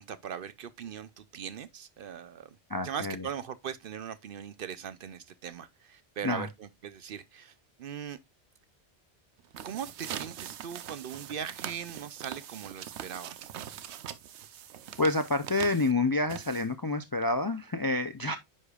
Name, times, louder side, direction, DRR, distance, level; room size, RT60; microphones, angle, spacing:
voice 1, 0.0-2.6 2.8-7.5 7.8-8.2 9.6-13.5, right 8 dB, 60° right, 0.7 m, -40 dB
voice 2, 2.7-3.3 6.2-6.5 15.0-18.4, left 2 dB, 35° left, 0.3 m, -28 dB
sound 1, 9.4-16.9, right 10 dB, 85° right, 0.9 m, -42 dB
9.6 x 5.0 x 2.3 m
omnidirectional pair, 1.1 m